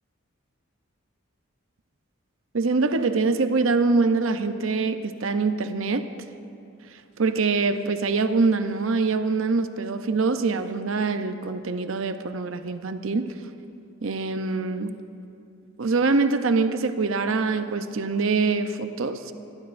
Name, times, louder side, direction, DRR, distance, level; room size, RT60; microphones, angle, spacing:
voice 1, 2.5-6.1 7.2-13.3 14.0-15.0 15.8-19.2, right 4 dB, 70° right, 9 dB, 0.7 m, -24 dB
27.0 x 11.5 x 2.6 m, 2.7 s
head